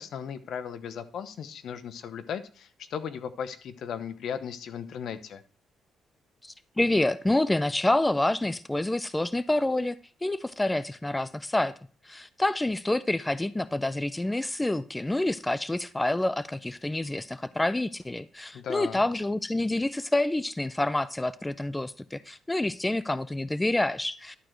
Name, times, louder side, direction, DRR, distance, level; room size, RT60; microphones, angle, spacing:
voice 1, 0.0-5.4 18.5-19.0, left 7 dB, 70° left, 13 dB, 0.9 m, -36 dB
voice 2, 6.4-11.7 12.1-24.4, left 1 dB, 10° left, 17 dB, 0.4 m, -28 dB
11.0 x 4.6 x 6.4 m, 0.41 s
cardioid pair, 90°, 0 cm